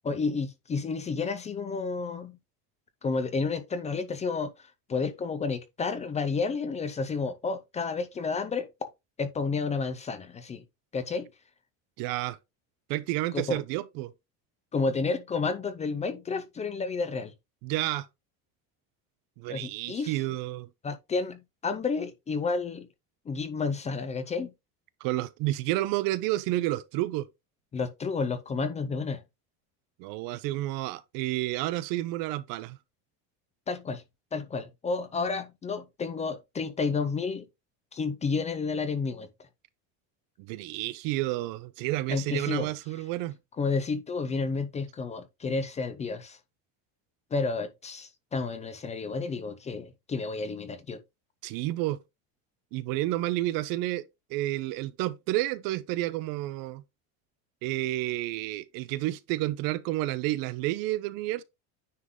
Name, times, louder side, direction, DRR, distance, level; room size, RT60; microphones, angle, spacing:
voice 1, 0.0-2.4 3.0-8.7 9.2-10.6 10.9-11.3 13.3-13.6 14.7-17.3 19.5-20.2 20.8-22.9 23.3-24.5 27.7-29.2 33.7-34.0 34.3-37.5 37.9-39.5 42.1-42.7 43.6-46.4 47.3-51.0, left 4 dB, 15° left, 0.6 m, -31 dB
voice 2, 12.0-12.4 12.9-14.1 17.6-18.1 19.4-20.7 25.0-27.3 30.0-32.8 40.4-43.4 51.4-52.0 52.7-56.8 57.6-61.4, right 16 dB, 60° right, 0.7 m, -30 dB
9.6 x 3.9 x 3.6 m
cardioid pair, 165°, 39 cm